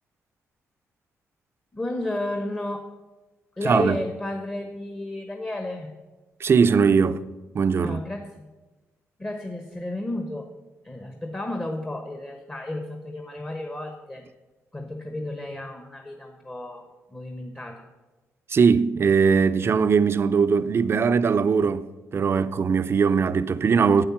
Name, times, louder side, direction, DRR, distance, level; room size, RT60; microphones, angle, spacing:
voice 1, 1.7-2.9 3.5-6.0 7.8-8.5 9.2-10.5 10.8-14.2 14.7-17.8, left 1 dB, 20° left, 1.1 m, -32 dB
voice 2, 3.6-4.0 6.4-7.2 7.5-8.0 18.5-21.9 22.1-24.1, right 5 dB, 50° right, 0.5 m, -20 dB
8.8 x 7.9 x 5.9 m
cardioid pair, 70°, 6 cm